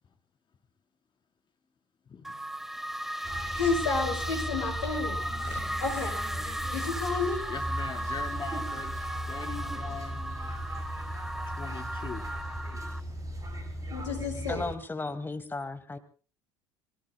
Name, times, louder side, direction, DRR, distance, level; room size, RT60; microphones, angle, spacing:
sound 1, 2.2-13.0, right 1 dB, ahead, 1.2 m, -36 dB
sound 2, 3.2-14.7, equal, 20° right, 7.8 m, -37 dB
voice 1, 3.5-5.2 5.5-6.2 6.7-7.4 13.9-14.6, left 4 dB, 75° left, 5 dB, 6.7 m, -31 dB
voice 2, 7.5-8.9 9.3-10.6 11.4-12.3, left 6 dB, 30° left, 5 dB, 4.0 m, -41 dB
voice 3, 14.5-16.0, left 3 dB, 15° left, 10 dB, 2.1 m, -35 dB
27.5 x 23.0 x 2.2 m, 0.37 s
figure-of-eight pair, 65°, 15 cm